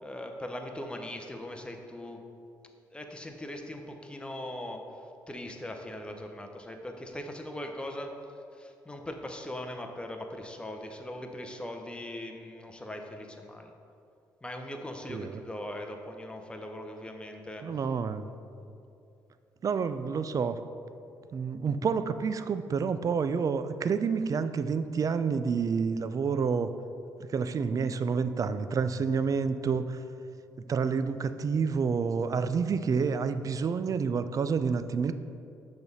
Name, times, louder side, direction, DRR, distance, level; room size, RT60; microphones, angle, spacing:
voice 1, 0.0-2.2 2.9-4.8 5.3-8.1 8.6-13.7 14.4-17.7 18.6-18.7, left 1 dB, 10° left, 3 dB, 0.8 m, -40 dB
voice 2, 15.1-15.4 17.6-18.3 19.6-20.6 21.3-26.7 27.2-30.0 30.6-35.1, right 5 dB, 45° right, 11 dB, 0.3 m, -29 dB
6.1 x 3.5 x 5.3 m, 2.6 s
supercardioid pair, 55°, 8 cm